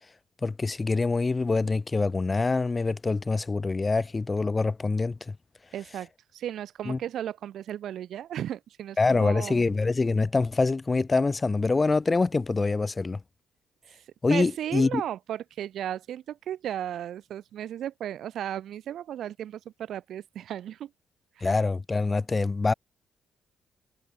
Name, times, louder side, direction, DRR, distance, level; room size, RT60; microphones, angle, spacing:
voice 1, 0.4-5.4 6.9-7.0 9.0-13.2 14.2-15.0 21.4-22.7, left 3 dB, 25° left, 0.4 m, -25 dB
voice 2, 5.7-9.7 13.9-20.9 21.4-21.5, right 11 dB, 70° right, 1.2 m, -35 dB
cardioid pair, 90°, 0 cm